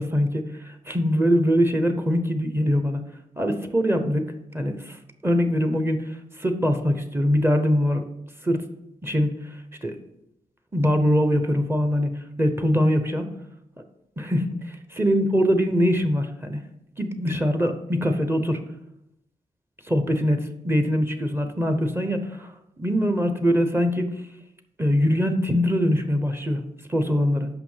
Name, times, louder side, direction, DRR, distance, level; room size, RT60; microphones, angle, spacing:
voice 1, 0.0-3.0 3.4-4.2 4.5-5.0 5.2-8.0 8.4-8.6 9.0-10.0 10.7-12.1 12.4-13.3 14.2-16.6 17.0-18.6 19.8-22.5 22.8-24.1 24.8-26.6 26.9-27.5, equal, 15° right, 7 dB, 1.0 m, -23 dB
5.9 x 5.4 x 5.7 m, 0.82 s
cardioid pair, 70°, 15 cm